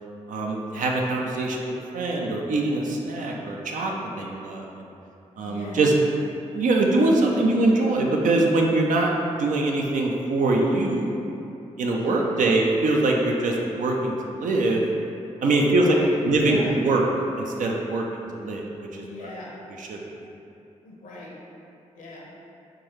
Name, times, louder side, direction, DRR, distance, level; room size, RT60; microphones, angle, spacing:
voice 1, 0.3-4.9 5.4-5.9 6.5-11.1 11.8-14.8 15.4-15.9 16.2-17.1 17.4-19.3 19.8-20.0, right 2 dB, 65° right, 0 dB, 0.5 m, -23 dB
voice 2, 5.4-5.9 12.0-12.4 15.8-16.7 19.0-19.6 20.8-21.4 21.9-22.3, left 2 dB, 70° left, -4 dB, 0.8 m, -38 dB
3.6 x 2.7 x 3.1 m, 2.7 s
supercardioid pair, 40°, 14 cm